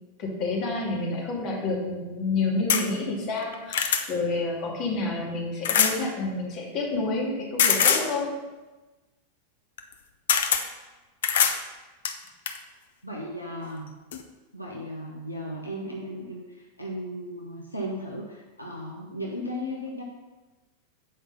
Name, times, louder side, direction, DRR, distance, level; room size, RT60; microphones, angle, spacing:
voice 1, 0.2-8.3, left 3 dB, 40° left, -2 dB, 2.4 m, -29 dB
sound 1, 2.7-2.8 3.4-4.0 5.6-6.0 7.6-8.1 9.8-9.9 10.3-10.6 11.2-11.6 12.0-12.6 13.6-13.7 14.1-14.2, left 7 dB, 60° left, 0.7 m, -22 dB
voice 2, 13.0-13.9 14.5-20.0, equal, 85° left, -2 dB, 1.1 m, -36 dB
8.0 x 5.2 x 5.4 m, 1.2 s
figure-of-eight pair, 90°, 0 cm